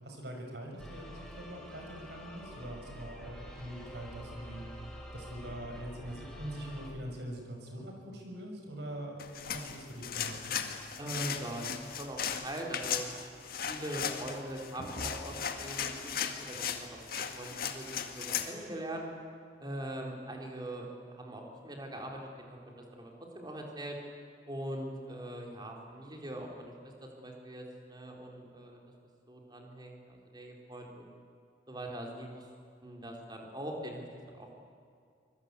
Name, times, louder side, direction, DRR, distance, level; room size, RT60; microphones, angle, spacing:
voice 1, 0.0-4.6 5.1-10.6, right 1 dB, 70° right, 1 dB, 6.1 m, -43 dB
sound 1, 0.8-6.9, equal, 5° left, 4.4 m, -47 dB
sound 2, 9.2-18.5, left 7 dB, 55° left, 1.9 m, -37 dB
voice 2, 11.0-13.1 13.7-19.1 19.6-24.0 24.5-26.7 27.0-28.8 29.3-31.1 31.7-32.5 32.8-34.5, right 1 dB, 25° right, 1 dB, 4.0 m, -42 dB
25.5 x 21.5 x 8.4 m, 2.3 s
head